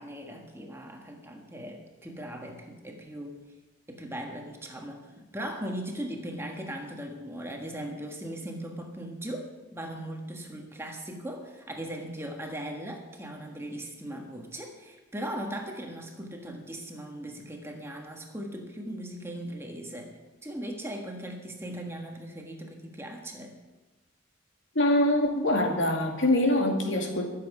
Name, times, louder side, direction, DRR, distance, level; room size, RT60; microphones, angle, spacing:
voice 1, 0.0-3.4 3.9-20.1 20.4-23.6, right 1 dB, 15° right, 2 dB, 1.4 m, -39 dB
voice 2, 24.7-27.3, left 1 dB, 70° left, 2 dB, 2.4 m, -24 dB
23.0 x 7.8 x 4.9 m, 1.2 s
head